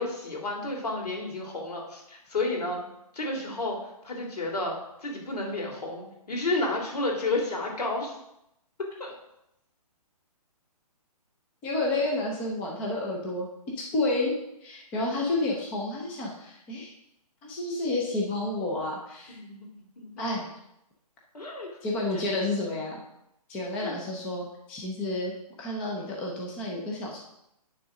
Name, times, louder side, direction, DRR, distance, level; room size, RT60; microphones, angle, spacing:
voice 1, 0.0-2.8 3.1-3.8 4.0-4.8 5.0-8.1 9.0-9.1 19.3-19.7 20.0-20.3 21.3-21.7 22.1-22.2 23.8-24.0, left 2 dB, 80° left, 0 dB, 3.0 m, -31 dB
voice 2, 11.6-13.5 13.8-14.3 14.6-16.9 17.5-19.4 20.2-20.5 21.8-23.0 23.5-25.3 25.6-27.3, left 2 dB, 5° left, -2 dB, 0.4 m, -30 dB
9.8 x 3.7 x 6.3 m, 0.83 s
hypercardioid pair, 165°, 20 cm